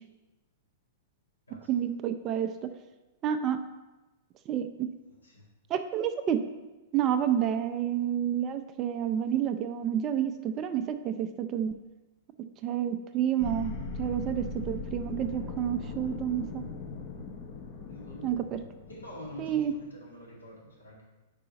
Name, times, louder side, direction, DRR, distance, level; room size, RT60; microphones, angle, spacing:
voice 1, 1.7-2.7 3.2-3.6 4.5-4.9 5.7-6.4 6.9-11.7 12.6-16.6 18.2-18.6 19.4-19.7, right 9 dB, 35° right, 8 dB, 0.4 m, -29 dB
voice 2, 5.0-5.4 17.9-18.3 18.8-21.0, left 1 dB, 90° left, -5 dB, 1.9 m, -47 dB
sound 1, 13.4-19.9, left 3 dB, 40° left, 0.8 m, -39 dB
4.9 x 4.6 x 5.1 m, 1.1 s
hypercardioid pair, 105°, 0 cm